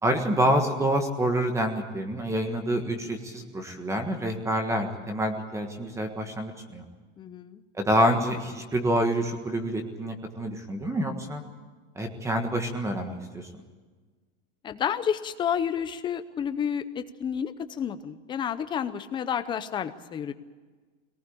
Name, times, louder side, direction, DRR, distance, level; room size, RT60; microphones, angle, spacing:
voice 1, 0.0-6.8 7.7-11.4 11.9-13.5, right 1 dB, 10° right, 6 dB, 1.5 m, -27 dB
voice 2, 7.2-7.6 14.6-20.3, left 8 dB, 15° left, 11 dB, 0.6 m, -30 dB
22.0 x 19.0 x 8.6 m, 1.4 s
supercardioid pair, 170°, 35 cm